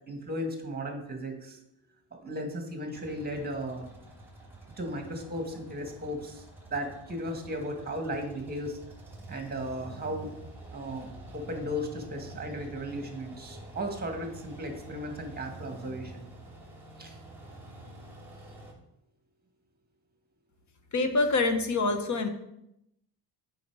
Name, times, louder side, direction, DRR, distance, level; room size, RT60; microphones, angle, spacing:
voice 1, 0.1-1.6 2.1-3.9 4.8-6.4 6.7-8.8 9.3-10.3 10.7-11.1 11.3-16.3 17.0-17.2, equal, 20° right, 4 dB, 1.9 m, -35 dB
sound 1, 2.9-18.7, right 2 dB, 5° right, 2.9 m, -47 dB
voice 2, 20.9-22.3, left 3 dB, 40° left, 7 dB, 1.2 m, -26 dB
7.9 x 5.8 x 4.8 m, 0.81 s
cardioid pair, 100°, 44 cm